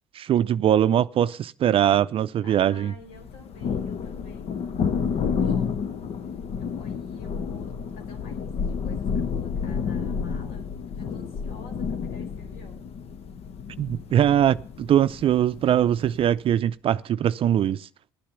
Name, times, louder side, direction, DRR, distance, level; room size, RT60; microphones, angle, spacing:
voice 1, 0.1-2.9 13.8-17.9, right 10 dB, 50° right, 0.5 m, -22 dB
voice 2, 2.4-4.6 5.1-5.8 6.6-12.9, left 4 dB, 85° left, 4.4 m, -50 dB
Thunder, 3.1-16.3, left 6 dB, 55° left, 1.0 m, -30 dB
13.0 x 8.6 x 6.8 m
supercardioid pair, 85°, 12 cm